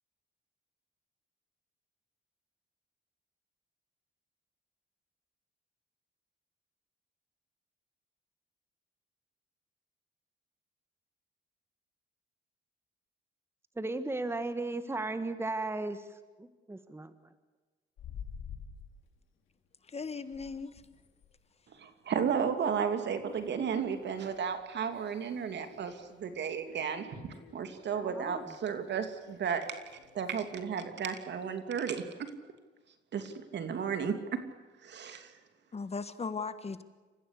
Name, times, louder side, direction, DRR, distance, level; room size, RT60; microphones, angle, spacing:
voice 1, 13.8-16.0 16.4-17.1 28.0-28.4, right 2 dB, 10° right, 1.4 m, -35 dB
sound 1, 18.0-19.0 19.5-19.7 20.0-30.7, left 7 dB, 75° left, 3.4 m, -52 dB
voice 2, 19.9-20.7 35.7-36.8, left 4 dB, 30° left, 1.5 m, -37 dB
voice 3, 21.8-29.8 30.1-32.3 33.1-34.5 34.8-35.3, right 7 dB, 60° right, 2.9 m, -34 dB
28.0 x 15.5 x 8.4 m
cardioid pair, 90°, 20 cm